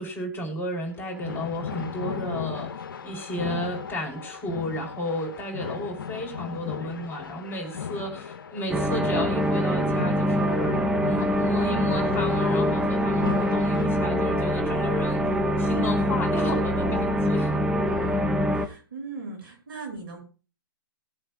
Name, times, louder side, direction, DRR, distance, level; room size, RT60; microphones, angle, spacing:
voice 1, 0.0-2.7 3.0-17.5, left 1 dB, 20° left, 1 dB, 4.4 m, -33 dB
sound 1, 1.0-13.9, left 7 dB, 75° left, 1.2 m, -36 dB
sound 2, 8.7-18.7, equal, 5° right, 1.2 m, -24 dB
voice 2, 17.8-20.2, right 4 dB, 75° right, 1 dB, 7.6 m, -40 dB
21.5 x 7.8 x 2.5 m, 0.35 s
hypercardioid pair, 125°, 12 cm